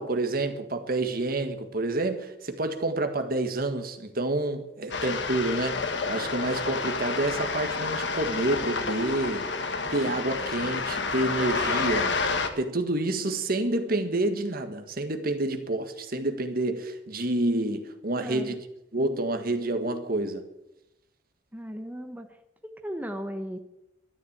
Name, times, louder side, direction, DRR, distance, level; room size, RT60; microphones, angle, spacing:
voice 1, 0.0-9.5 9.9-12.2 12.6-18.6 18.9-20.5, right 2 dB, 55° right, 1.7 m, -28 dB
sound 1, 4.9-12.5, left 4 dB, 80° left, 1.6 m, -29 dB
voice 2, 18.2-18.5 21.5-22.4 22.6-23.6, equal, 10° right, 0.9 m, -36 dB
13.0 x 10.5 x 8.8 m
head